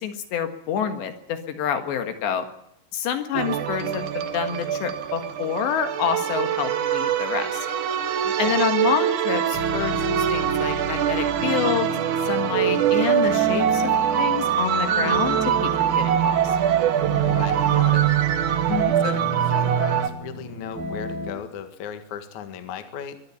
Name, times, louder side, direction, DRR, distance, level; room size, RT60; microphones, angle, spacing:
voice 1, 0.0-2.5 2.9-7.7 8.4-11.9 12.3-13.9 14.2-16.4 18.7-18.9, left 8 dB, 75° left, 8 dB, 3.8 m, -27 dB
sound 1, 3.3-20.1, right 10 dB, 65° right, 2.0 m, -23 dB
voice 2, 8.2-8.7 17.2-18.1 19.0-23.2, left 8 dB, 55° left, 8 dB, 2.5 m, -36 dB
sound 2, 9.5-21.3, left 1 dB, 25° right, 4.2 m, -34 dB
23.5 x 11.5 x 9.8 m, 0.74 s
omnidirectional pair, 5.2 m